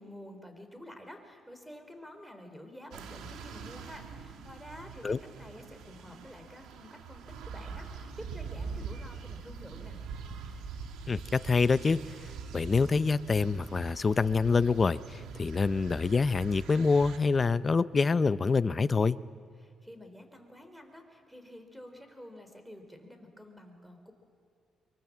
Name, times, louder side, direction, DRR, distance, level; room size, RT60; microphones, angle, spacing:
voice 1, 0.0-10.0 19.6-24.1, equal, 5° right, 6 dB, 4.1 m, -49 dB
sound 1, 2.9-17.2, right 5 dB, 85° right, 2.1 m, -43 dB
voice 2, 11.1-12.0 12.5-19.2, left 4 dB, 35° left, 15 dB, 0.6 m, -26 dB
24.5 x 23.0 x 7.4 m, 2.4 s
cardioid pair, 90°, 0 cm